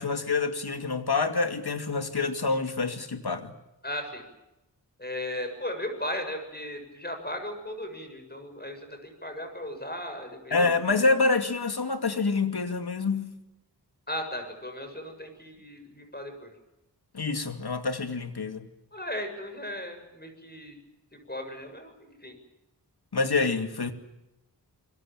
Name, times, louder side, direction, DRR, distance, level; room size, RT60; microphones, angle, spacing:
voice 1, 0.0-3.5 10.5-13.4 17.1-18.7 23.1-23.9, left 4 dB, 65° left, 2.6 m, -27 dB
voice 2, 3.8-4.2 5.0-10.7 14.1-16.5 18.9-20.8 21.3-22.4, left 1 dB, 25° left, 7.2 m, -36 dB
26.0 x 22.5 x 7.7 m
wide cardioid pair, 50°, 41 cm